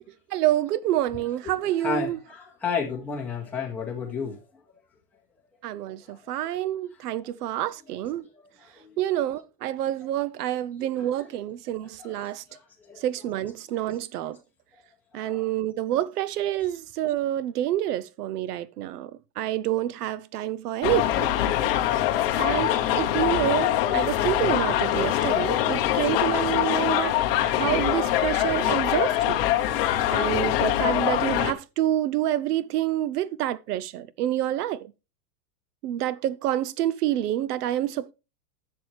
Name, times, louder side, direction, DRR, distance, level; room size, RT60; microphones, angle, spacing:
voice 1, 0.3-2.2 5.6-8.2 9.0-12.4 13.0-14.4 15.1-19.1 19.4-21.3 22.4-27.1 27.5-29.4 30.1-34.9 35.8-38.1, right 13 dB, 75° right, 0.6 m, -28 dB
voice 2, 1.8-4.4 6.0-6.2 8.2-8.3 8.8-9.0 11.0-11.1 12.0-12.6 12.9-13.0 13.7-13.8 15.1-15.5, left 6 dB, 5° left, 1.8 m, -32 dB
sound 1, 20.8-31.5, left 12 dB, 35° left, 1.0 m, -23 dB
11.0 x 7.5 x 3.3 m
supercardioid pair, 180°, 47 cm